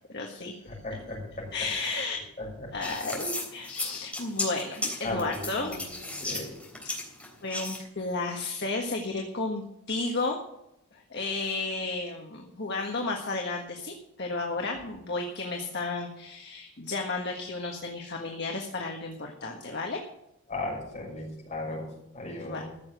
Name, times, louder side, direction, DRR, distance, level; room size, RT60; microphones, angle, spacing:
voice 1, 0.1-0.6 1.5-2.2 2.7-6.1 6.8-7.0 7.4-10.4 10.9-20.1 22.4-22.7, left 3 dB, 50° left, 1 dB, 1.6 m, -33 dB
voice 2, 0.8-1.2 2.6-2.7 5.0-5.9 6.2-6.5 20.5-21.9 22.1-22.7, left 2 dB, 35° left, -2 dB, 6.4 m, -35 dB
sound 1, 2.8-7.8, left 2 dB, 5° left, 3.4 m, -35 dB
15.0 x 7.3 x 8.0 m, 0.83 s
head